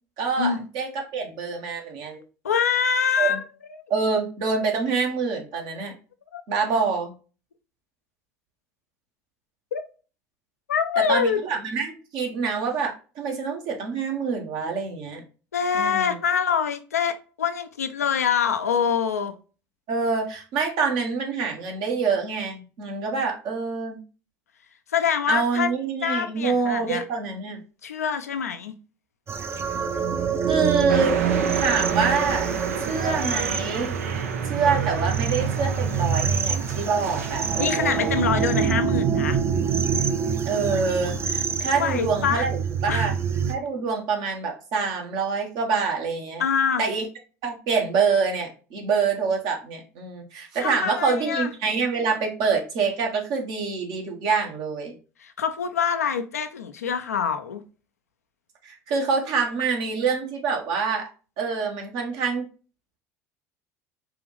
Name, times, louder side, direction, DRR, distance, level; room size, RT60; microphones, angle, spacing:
voice 1, 0.2-2.2 3.2-3.4 3.9-5.9 6.5-7.1 11.0-15.2 15.7-16.2 19.9-24.0 25.3-27.6 30.5-31.2 31.5-32.5 32.9-33.9 34.4-38.2 40.5-43.2 43.5-46.4 46.8-47.0 47.4-54.9 58.6-61.1 61.4-62.4, right 5 dB, 60° right, 1.2 m, -26 dB
voice 2, 2.4-3.4 6.3-6.4 9.7-9.8 10.7-11.5 15.5-19.3 24.9-25.7 26.0-27.0 27.8-28.7 37.6-39.4 41.8-42.4 42.9-43.1 46.4-46.8 50.6-51.5 55.2-57.6, left 7 dB, 90° left, 0.4 m, -25 dB
sound 1, 29.3-43.5, right 7 dB, 30° right, 0.6 m, -26 dB
sound 2, 30.9-38.7, right 6 dB, 80° right, 0.5 m, -32 dB
4.8 x 2.5 x 3.2 m
hypercardioid pair, 65°, 8 cm